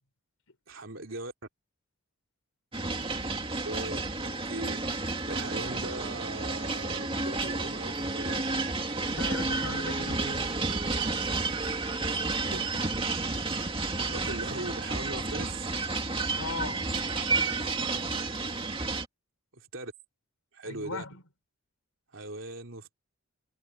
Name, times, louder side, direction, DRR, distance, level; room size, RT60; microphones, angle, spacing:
voice 1, 0.7-1.3 3.5-8.4 12.4-12.6 14.1-15.7 19.5-19.9 20.5-21.0 22.1-22.9, right 2 dB, 60° right, 3.3 m, -39 dB
sound 1, 2.7-19.0, right 3 dB, 25° right, 2.4 m, -31 dB
voice 2, 9.1-10.6 16.4-16.9 20.6-21.2, left 3 dB, 75° left, 4.5 m, -38 dB
head